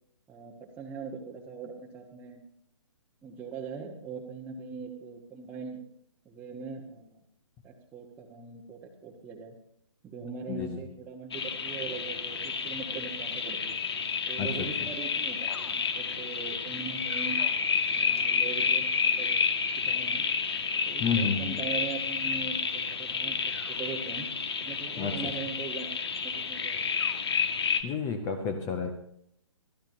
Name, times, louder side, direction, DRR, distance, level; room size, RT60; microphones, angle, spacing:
voice 1, 0.3-2.4 3.2-5.8 6.2-7.2 7.6-9.5 10.0-13.8 14.3-17.4 17.9-19.3 19.9-20.2 20.8-24.3 24.6-25.9 26.2-26.8, right 5 dB, 10° right, -3 dB, 1.3 m, -41 dB
voice 2, 10.5-10.8 14.4-14.7 21.0-21.6 25.0-25.2 27.8-28.9, left 5 dB, 20° left, 8 dB, 1.0 m, -30 dB
sound 1, 11.3-27.8, left 5 dB, 55° left, 1.7 m, -30 dB
24.0 x 14.5 x 2.7 m, 0.71 s
figure-of-eight pair, 135°, 16 cm